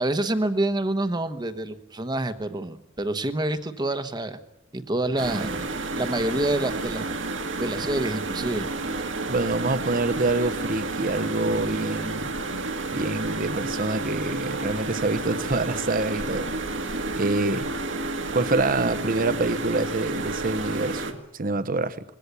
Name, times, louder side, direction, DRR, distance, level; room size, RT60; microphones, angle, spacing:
voice 1, 0.0-4.4 4.7-5.7 5.9-7.1 7.6-8.7, right 1 dB, 20° right, 1.2 m, -27 dB
sound 1, 5.2-21.1, right 2 dB, 75° right, 2.0 m, -30 dB
voice 2, 9.3-12.4 12.9-16.5 17.2-17.7 18.3-22.0, right 2 dB, 45° right, 1.0 m, -26 dB
21.5 x 16.5 x 8.4 m
head